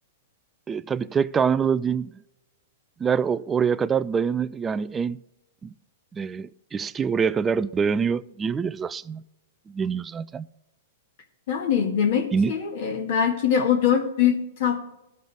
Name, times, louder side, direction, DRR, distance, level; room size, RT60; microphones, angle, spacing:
voice 1, 0.7-2.2 3.0-5.2 5.6-5.7 6.1-9.2 9.7-10.5 12.3-12.5, right 6 dB, 15° right, 0.3 m, -25 dB
voice 2, 11.5-14.8, left 8 dB, 60° left, 1.9 m, -23 dB
14.5 x 5.4 x 3.4 m
hypercardioid pair, 125°, 0 cm